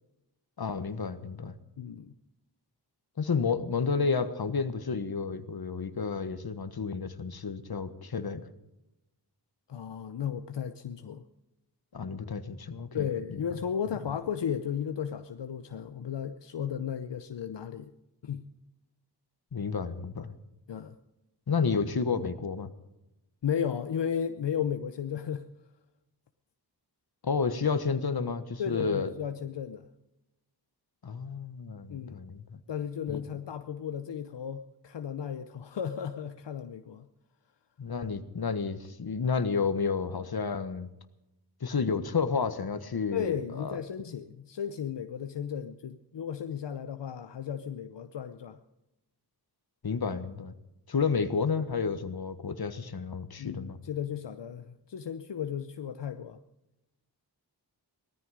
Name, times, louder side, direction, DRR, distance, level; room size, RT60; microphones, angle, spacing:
voice 1, 0.6-1.5 3.2-8.4 11.9-13.1 19.5-20.3 21.5-22.7 27.2-29.1 31.0-32.6 33.1-33.2 37.8-40.9 41.6-43.8 49.8-50.5 50.9-53.8, left 5 dB, 60° left, 11 dB, 1.4 m, -31 dB
voice 2, 1.8-2.1 9.7-11.3 12.9-17.9 18.2-18.5 20.7-21.0 23.4-25.5 28.6-29.9 31.9-32.2 32.7-37.1 43.1-48.6 53.4-56.4, left 8 dB, 85° left, 9 dB, 0.8 m, -34 dB
18.5 x 14.0 x 5.0 m, 0.91 s
wide cardioid pair, 60°, 41 cm